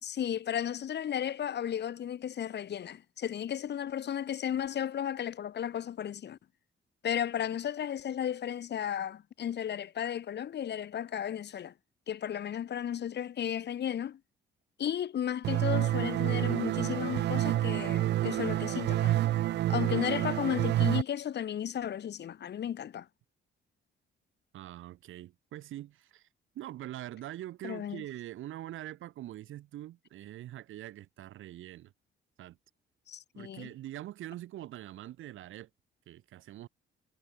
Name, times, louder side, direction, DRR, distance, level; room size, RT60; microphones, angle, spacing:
voice 1, 0.0-6.4 7.0-11.7 12.1-14.2 14.8-19.2 19.7-23.1 27.6-28.0 33.1-33.7, left 9 dB, 60° left, 1.8 m, -34 dB
sound 1, 15.4-21.0, right 14 dB, 60° right, 0.4 m, -28 dB
voice 2, 24.5-26.3 26.5-31.9 32.4-32.6 33.3-35.7 36.1-36.7, right 14 dB, 85° right, 7.4 m, -43 dB
cardioid pair, 90°, 20 cm